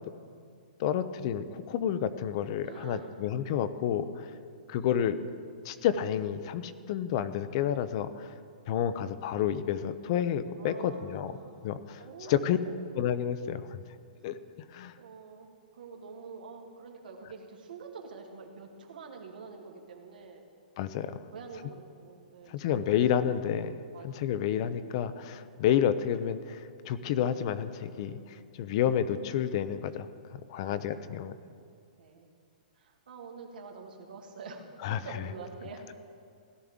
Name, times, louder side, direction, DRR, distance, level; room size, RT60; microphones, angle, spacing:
voice 1, 0.8-4.3 4.7-5.2 5.6-8.3 8.7-11.3 11.6-12.6 13.0-13.8 14.2-14.4 14.7-14.9 20.8-21.2 22.5-23.7 24.0-28.2 28.5-30.1 30.5-31.3 34.8-35.0, left 9 dB, 40° left, 13 dB, 0.5 m, -30 dB
voice 2, 2.6-3.1 10.6-12.9 14.9-20.5 21.3-23.1 23.9-24.4 28.0-28.2 30.6-31.0 32.0-32.3 32.8-35.9, right 4 dB, 80° right, 1 dB, 2.1 m, -47 dB
17.0 x 12.0 x 3.6 m, 2.3 s
hypercardioid pair, 160°, 5 cm